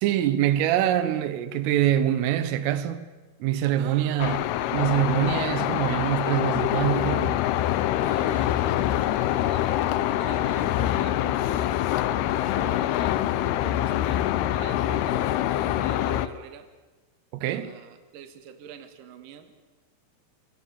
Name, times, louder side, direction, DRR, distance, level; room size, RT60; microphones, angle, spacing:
voice 1, 0.0-3.1 3.4-4.5 4.7-7.4 17.3-17.7, right 11 dB, 85° right, 3.8 m, -24 dB
voice 2, 3.8-4.3 8.0-11.8 12.4-16.7 17.4-19.5, right 8 dB, 55° right, 2.9 m, -45 dB
sound 1, 4.2-16.3, left 12 dB, 80° left, 2.3 m, -25 dB
28.0 x 25.0 x 7.2 m
omnidirectional pair, 5.7 m